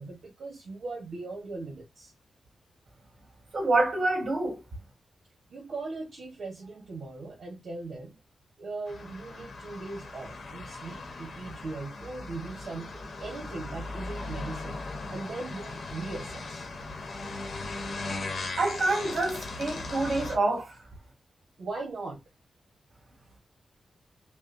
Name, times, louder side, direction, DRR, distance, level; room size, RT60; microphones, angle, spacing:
voice 1, 0.0-2.1 5.5-8.2 8.6-14.8 15.1-16.7 21.6-22.2, right 3 dB, 65° right, 1.4 m, -39 dB
voice 2, 3.5-4.6 18.6-20.8, right 2 dB, 50° right, 2.9 m, -27 dB
sound 1, 8.9-20.4, left 3 dB, 55° left, 1.2 m, -38 dB
6.1 x 2.3 x 2.6 m
wide cardioid pair, 160°, 0 cm